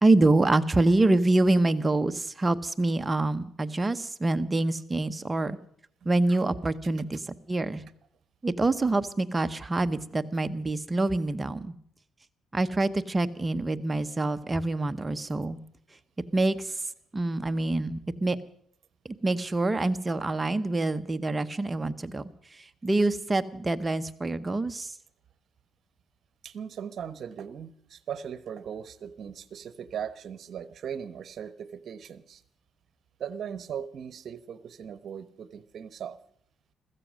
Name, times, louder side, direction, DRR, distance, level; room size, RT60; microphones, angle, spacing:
voice 1, 0.0-5.6 6.0-7.8 8.4-11.7 12.5-15.6 16.3-16.8 17.1-18.4 19.0-24.9, right 2 dB, 20° right, 10 dB, 0.9 m, -26 dB
voice 2, 26.4-32.4 33.2-36.2, right 8 dB, 60° right, 14 dB, 1.0 m, -38 dB
15.5 x 14.0 x 6.3 m, 0.65 s
cardioid pair, 95°, 0 cm